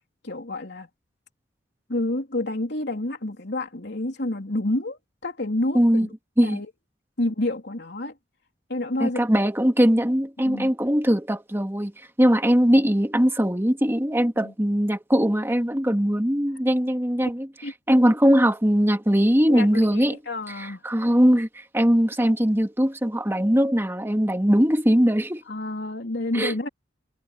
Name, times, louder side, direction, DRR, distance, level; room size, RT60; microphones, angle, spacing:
voice 1, 0.2-0.9 1.9-6.1 6.4-6.7 7.2-8.1 8.7-9.3 10.4-10.7 14.4-14.5 17.6-17.7 19.5-20.8 25.5-26.7, left 1 dB, 60° left, 3.5 m, -29 dB
voice 2, 5.7-6.1 6.4-6.6 9.0-11.9 12.2-17.5 17.9-20.2 20.6-25.4 26.3-26.7, equal, 10° right, 1.8 m, -21 dB
head